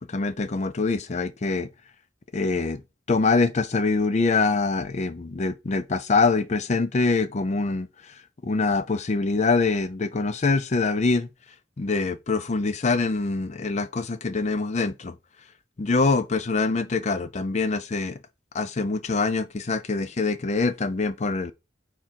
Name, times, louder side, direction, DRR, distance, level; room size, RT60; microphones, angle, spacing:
voice 1, 0.0-1.7 2.3-2.8 3.1-11.3 11.8-15.2 15.8-18.2 18.5-21.5, left 3 dB, 35° left, 0.5 m, -24 dB
8.9 x 3.7 x 4.5 m
head